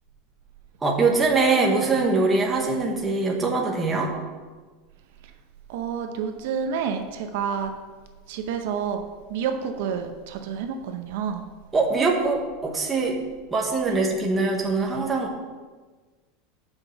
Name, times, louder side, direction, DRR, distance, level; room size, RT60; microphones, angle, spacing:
voice 1, 0.8-4.1 11.7-13.2 13.5-15.4, right 3 dB, 10° right, -1 dB, 0.9 m, -23 dB
voice 2, 5.7-7.7 8.3-9.0 9.3-11.4 13.9-14.0, right 7 dB, 60° right, 6 dB, 0.7 m, -29 dB
6.2 x 5.3 x 6.8 m, 1.4 s
supercardioid pair, 175°, 0 cm